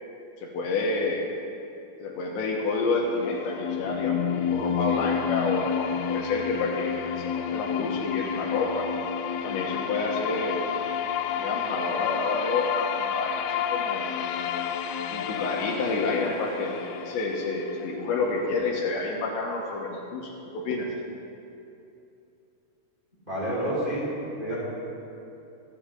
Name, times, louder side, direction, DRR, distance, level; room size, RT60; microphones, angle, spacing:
voice 1, 0.4-1.2 2.0-4.2 4.5-8.9 9.4-10.6 11.4-14.1 15.1-20.9, left 3 dB, 75° left, -1 dB, 3.4 m, -29 dB
sound 1, 2.9-18.9, left 8 dB, 90° left, 3.1 m, -30 dB
voice 2, 23.3-24.0 24.4-24.6, right 1 dB, 10° right, -8 dB, 4.1 m, -28 dB
26.0 x 11.5 x 3.8 m, 2.8 s
omnidirectional pair, 5.4 m